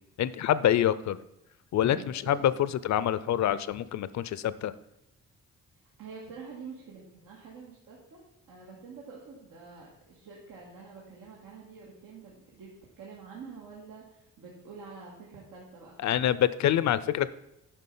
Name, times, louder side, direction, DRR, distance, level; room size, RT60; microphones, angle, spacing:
voice 1, 0.2-1.2 1.7-4.7 16.0-17.3, left 11 dB, 55° left, 16 dB, 0.5 m, -26 dB
voice 2, 1.9-2.7 6.0-8.2 8.5-16.2, right 5 dB, 90° right, -4 dB, 2.0 m, -47 dB
9.9 x 5.8 x 5.5 m, 0.89 s
cardioid pair, 125°, 33 cm